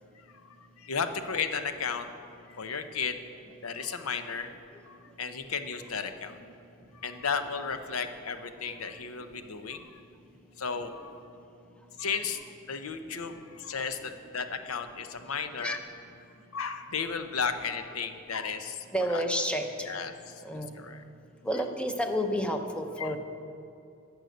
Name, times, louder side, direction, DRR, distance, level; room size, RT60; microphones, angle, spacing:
voice 1, 0.6-2.1 2.5-3.2 3.6-4.5 4.9-6.4 6.9-10.0 10.6-11.2 12.0-12.4 12.7-15.8 16.5-19.2 19.8-21.0 23.0-23.1, left 5 dB, 80° left, 9 dB, 0.7 m, -34 dB
voice 2, 18.9-19.9 20.4-20.7 21.4-23.2, equal, 5° left, 5 dB, 0.7 m, -30 dB
11.5 x 6.4 x 7.8 m, 2.6 s
head